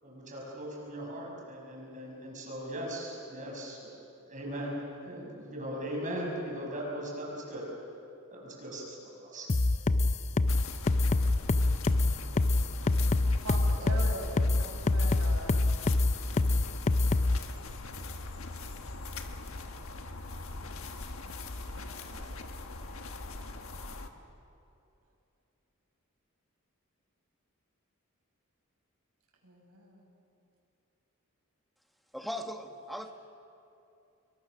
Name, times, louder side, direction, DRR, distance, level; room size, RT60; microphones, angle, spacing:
voice 1, 0.0-3.9 4.3-4.8 5.1-7.6 8.3-9.5, equal, 35° right, -2 dB, 6.2 m, -39 dB
sound 1, 9.5-17.4, left 2 dB, 30° left, 0.5 m, -25 dB
sound 2, 10.5-24.1, left 3 dB, 65° left, 1.5 m, -42 dB
voice 2, 11.4-12.4 13.4-15.6 21.8-22.3 29.4-30.1 33.0-33.1, right 1 dB, 85° right, -2 dB, 6.9 m, -42 dB
voice 3, 32.1-33.1, equal, ahead, 5 dB, 1.2 m, -38 dB
27.0 x 23.5 x 6.3 m, 2.7 s
head